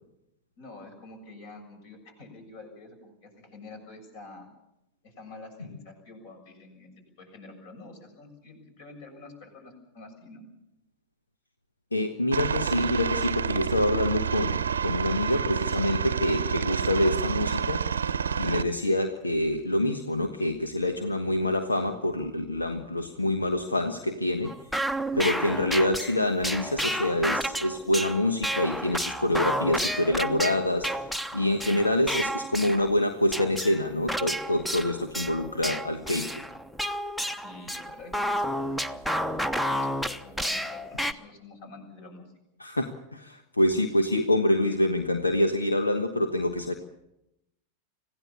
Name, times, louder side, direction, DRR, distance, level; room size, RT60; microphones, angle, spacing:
voice 1, 0.6-4.5 5.0-6.9 7.2-10.5 25.2-25.5 31.6-32.0 37.4-39.0 39.7-42.3, left 3 dB, 50° left, 5 dB, 7.3 m, -47 dB
voice 2, 11.9-17.8 18.4-24.5 25.2-31.0 31.3-36.3 42.6-46.7, left 1 dB, 80° left, 8 dB, 1.3 m, -26 dB
Aircraft, 12.3-18.6, right 7 dB, 70° right, 0.8 m, -28 dB
sound 1, 24.4-33.0 33.3-41.1, equal, 5° left, 1.0 m, -31 dB
25.5 x 16.5 x 7.1 m, 0.86 s
figure-of-eight pair, 90°, 0 cm